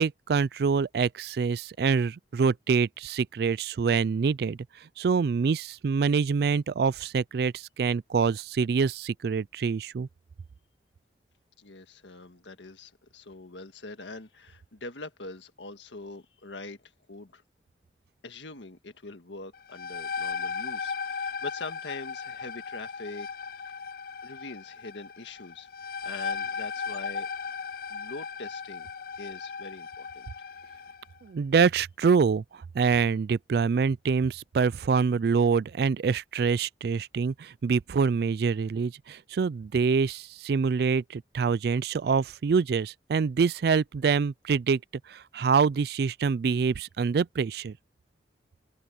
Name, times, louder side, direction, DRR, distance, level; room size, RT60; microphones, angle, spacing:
voice 1, 0.0-4.6 5.0-10.1 31.2-32.4 32.7-44.8 45.1-47.8, right 5 dB, 60° right, 0.3 m, -25 dB
voice 2, 11.6-17.4 18.2-23.3 24.2-27.3 27.9-28.9 29.2-30.3, left 3 dB, 90° left, 1.7 m, -43 dB
sound 1, 19.5-31.0, left 6 dB, 50° left, 0.4 m, -36 dB
open air
head